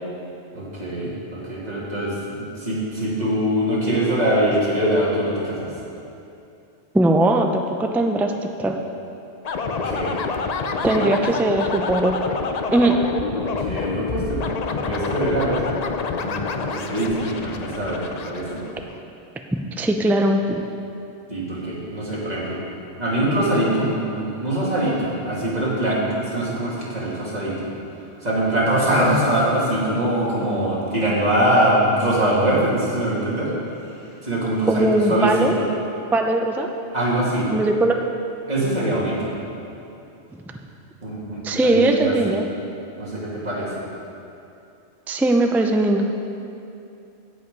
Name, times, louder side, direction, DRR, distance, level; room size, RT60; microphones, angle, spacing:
voice 1, 0.5-5.7 9.6-10.2 10.7-11.1 13.3-15.6 16.2-18.6 21.3-22.6 23.0-27.7 28.2-33.5 33.8-34.0 34.2-35.7 36.9-37.5 38.5-39.3 41.0-42.4 43.0-43.7, right 1 dB, 35° right, -7 dB, 2.7 m, -23 dB
voice 2, 6.9-8.3 8.6-8.8 10.8-12.2 12.7-13.0 19.8-20.6 34.7-35.5 36.1-36.7 37.5-38.0 41.4-42.4 45.1-46.1, right 2 dB, 5° right, 4 dB, 0.3 m, -19 dB
sound 1, 9.4-19.0, left 5 dB, 45° left, 0.5 m, -28 dB
16.0 x 5.7 x 5.3 m, 2.7 s
omnidirectional pair, 1.2 m